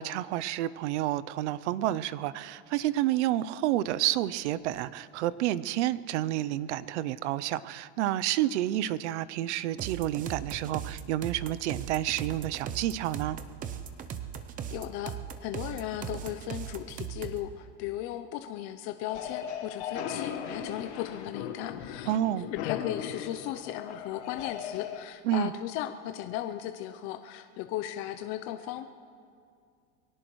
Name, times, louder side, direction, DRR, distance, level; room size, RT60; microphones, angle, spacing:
voice 1, 0.0-13.4 22.1-22.5 25.2-25.5, right 13 dB, 75° right, 17 dB, 0.6 m, -29 dB
sound 1, 9.8-17.5, right 8 dB, 25° right, 0.7 m, -38 dB
voice 2, 14.7-15.2 15.4-28.9, left 12 dB, 40° left, 8 dB, 0.5 m, -36 dB
sound 2, 19.1-25.0, left 8 dB, 65° left, 1.3 m, -38 dB
23.0 x 17.5 x 3.1 m, 2.3 s
supercardioid pair, 145°, 35 cm